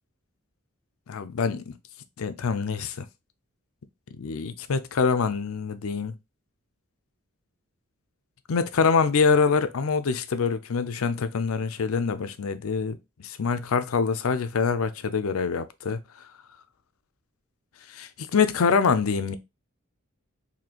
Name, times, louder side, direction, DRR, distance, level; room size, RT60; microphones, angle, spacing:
voice 1, 1.1-1.8 2.2-3.1 4.2-6.2 8.5-13.0 13.2-16.0 17.9-19.4, left 5 dB, 75° left, 0.5 m, -25 dB
4.2 x 2.7 x 2.8 m
head